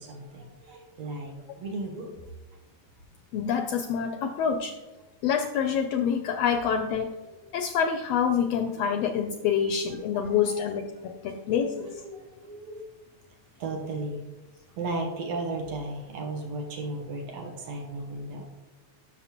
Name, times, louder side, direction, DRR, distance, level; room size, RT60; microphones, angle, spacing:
voice 1, 0.0-2.1 4.1-4.3 7.3-7.4 9.6-9.7 10.1-10.7 11.0-12.9 13.6-14.2 14.8-18.4, right 2 dB, 65° right, 1 dB, 2.1 m, -36 dB
voice 2, 3.3-4.7 5.2-7.1 7.5-11.9, left 7 dB, 80° left, 6 dB, 1.5 m, -27 dB
11.0 x 6.6 x 2.9 m, 1.2 s
omnidirectional pair, 3.3 m